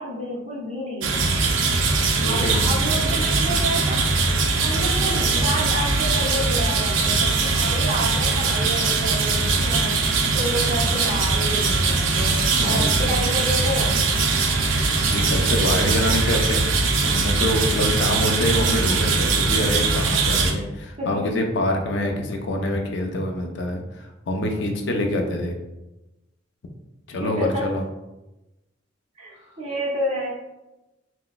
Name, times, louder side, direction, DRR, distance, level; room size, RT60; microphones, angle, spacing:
voice 1, 0.0-1.6 2.1-10.0 10.3-12.3 12.6-14.0 15.4-16.0 21.0-21.4 27.2-27.7 29.2-30.3, equal, 35° right, -4 dB, 0.7 m, -30 dB
sound 1, 1.0-20.5, right 3 dB, 80° right, 0.4 m, -21 dB
voice 2, 2.2-2.6 12.6-12.9 14.6-14.8 15.1-16.6 17.0-25.6 27.1-27.8, left 1 dB, 65° left, 3 dB, 0.4 m, -26 dB
3.9 x 2.0 x 2.3 m, 0.99 s
head